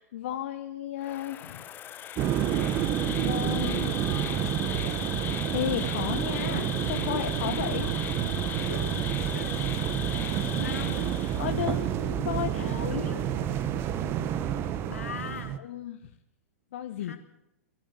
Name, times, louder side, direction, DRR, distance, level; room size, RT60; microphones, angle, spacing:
voice 1, 0.0-1.6 3.1-4.0 5.5-7.9 10.4-10.8 11.4-12.8 13.5-13.6 15.6-16.1 16.7-17.2, left 11 dB, 50° left, 6 dB, 1.6 m, -34 dB
Insect, 1.0-11.8, left 10 dB, 25° left, 1.6 m, -38 dB
sound 1, 2.2-15.6, right 10 dB, 30° right, 1.5 m, -29 dB
voice 2, 10.6-11.3 12.6-13.5 14.9-15.6 17.0-17.2, left 6 dB, 70° left, 6 dB, 3.3 m, -40 dB
23.0 x 14.0 x 8.6 m, 0.84 s
figure-of-eight pair, 100°, 8 cm